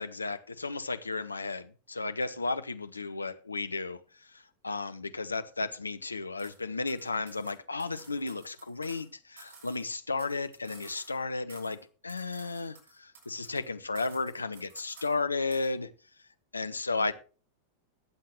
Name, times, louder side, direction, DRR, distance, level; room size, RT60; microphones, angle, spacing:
voice 1, 0.0-4.0 4.3-15.9 16.5-17.1, left 3 dB, 80° left, 0.8 m, -34 dB
sound 1, 6.4-6.6 6.9-9.1 9.4-11.2 11.5-11.8 12.1-13.7 13.9-15.2 15.5-15.7, right 4 dB, 50° right, 7.3 m, -54 dB
21.0 x 7.7 x 3.1 m
figure-of-eight pair, 90°, 0 cm